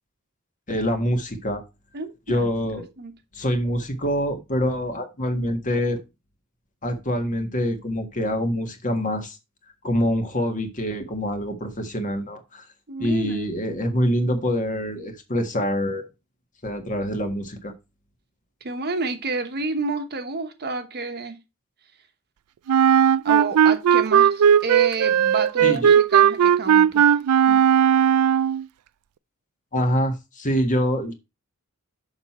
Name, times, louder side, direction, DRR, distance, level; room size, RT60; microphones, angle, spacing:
voice 1, 0.7-1.6 2.3-2.9 3.3-6.0 6.8-9.4 9.8-12.6 13.0-16.0 16.6-17.7 25.6-25.8 29.7-31.1, equal, 35° left, 1.5 m, -25 dB
voice 2, 1.9-2.5 3.0-3.1 12.9-13.4 18.6-21.4 23.2-27.2 27.5-27.6, right 3 dB, 45° right, 1.1 m, -30 dB
Wind instrument woodwind instrument, 22.7-28.6, right 9 dB, 80° right, 0.4 m, -17 dB
6.6 x 5.9 x 4.3 m
head